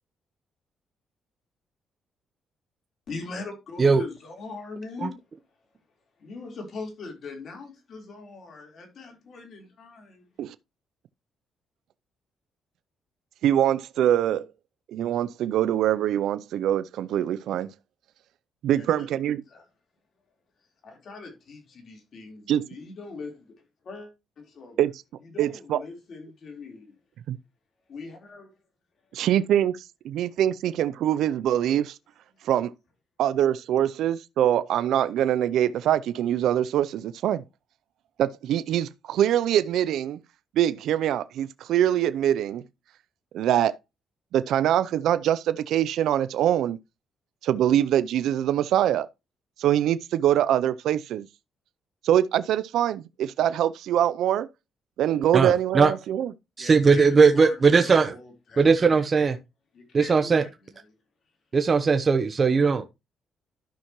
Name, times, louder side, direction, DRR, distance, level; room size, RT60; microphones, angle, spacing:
voice 1, 3.1-5.2 6.2-10.3 18.8-19.1 19.5-19.6 20.8-23.5 23.8-24.8 25.2-27.0 27.9-28.5 56.6-59.0 59.7-60.8, left 3 dB, 55° left, 3.9 m, -41 dB
voice 2, 13.4-14.4 14.9-17.7 18.6-19.4 22.5-22.6 24.8-24.9 25.4-25.8 27.3-27.4 29.1-32.0 32.4-32.7 33.2-37.4 38.2-40.2 40.6-42.6 43.3-43.8 44.3-46.8 47.4-49.1 49.6-51.2 52.0-54.5 55.0-56.3, right 11 dB, 80° right, 0.5 m, -23 dB
voice 3, 55.3-55.9 56.6-58.1 58.6-59.4 59.9-60.4 61.5-62.8, right 5 dB, 35° right, 0.8 m, -19 dB
12.5 x 5.7 x 3.0 m
cardioid pair, 90°, 0 cm